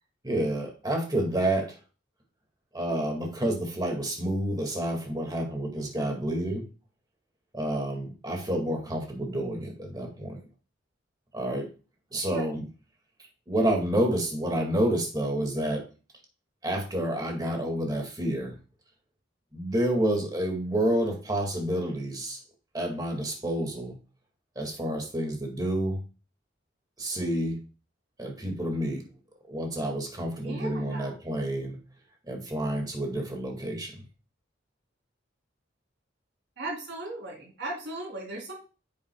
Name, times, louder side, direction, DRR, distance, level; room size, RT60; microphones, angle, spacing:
voice 1, 0.2-1.8 2.7-6.7 7.5-10.4 11.3-11.7 12.1-12.6 13.5-15.9 16.6-18.6 19.5-22.4 22.7-23.9 24.6-26.0 27.0-27.6 28.2-29.0 29.5-31.8 32.3-34.0, right 1 dB, 20° right, 2 dB, 2.0 m, -29 dB
voice 2, 30.4-31.1 36.6-38.5, right 2 dB, 65° right, -1 dB, 3.4 m, -37 dB
9.1 x 7.5 x 2.3 m, 0.34 s
head